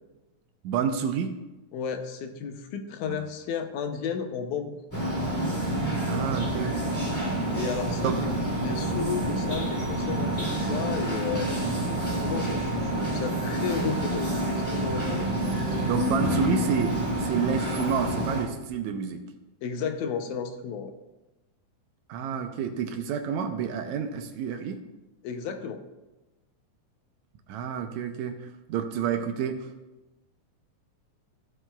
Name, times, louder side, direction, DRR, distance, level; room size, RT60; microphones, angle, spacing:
voice 1, 0.6-1.3 3.1-3.2 6.1-6.8 8.0-8.1 11.5-11.8 15.9-19.2 22.1-24.8 27.5-29.7, right 7 dB, 80° right, 6 dB, 1.8 m, -29 dB
voice 2, 1.7-4.8 7.5-8.3 8.6-11.5 11.9-15.3 19.6-20.9 25.2-25.8, left 7 dB, 80° left, 6 dB, 2.1 m, -33 dB
sound 1, 4.9-18.4, right 1 dB, 5° left, 2.5 m, -28 dB
14.5 x 7.8 x 2.3 m, 1.0 s
omnidirectional pair, 3.5 m